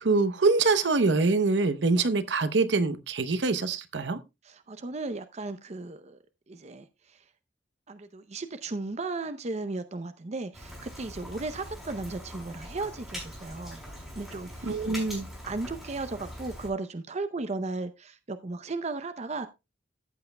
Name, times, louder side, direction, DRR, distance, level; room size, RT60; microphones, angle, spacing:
voice 1, 0.0-4.2 14.6-15.3, right 3 dB, 65° right, 0.8 m, -24 dB
voice 2, 4.4-6.2 6.5-7.2 7.9-13.8 14.2-14.8 15.4-19.5, right 3 dB, 35° right, 0.6 m, -35 dB
Rain, 10.5-16.7, equal, ahead, 5.6 m, -42 dB
14.0 x 8.1 x 2.2 m
head